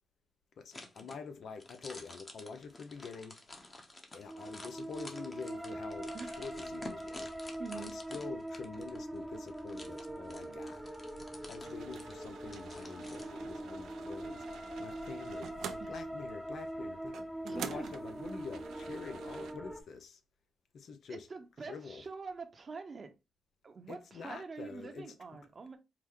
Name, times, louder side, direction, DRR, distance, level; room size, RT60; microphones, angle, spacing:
voice 1, 0.6-3.4 4.1-7.3 7.7-10.8 11.5-14.4 14.8-15.5 15.9-17.2 17.5-20.2 20.7-21.3 21.7-22.0 23.9-25.1, left 5 dB, 70° left, 0.6 m, -46 dB
sound 1, 0.7-13.3, left 2 dB, 30° left, 1.1 m, -51 dB
sound 2, 4.3-19.8, right 1 dB, ahead, 0.6 m, -43 dB
voice 2, 7.6-8.0 15.8-15.9 17.4-17.9 21.1-23.1 23.6-25.8, right 4 dB, 45° right, 0.9 m, -45 dB
sound 3, 11.6-19.5, right 7 dB, 80° right, 0.5 m, -48 dB
4.7 x 2.1 x 3.6 m
cardioid pair, 65°, 0 cm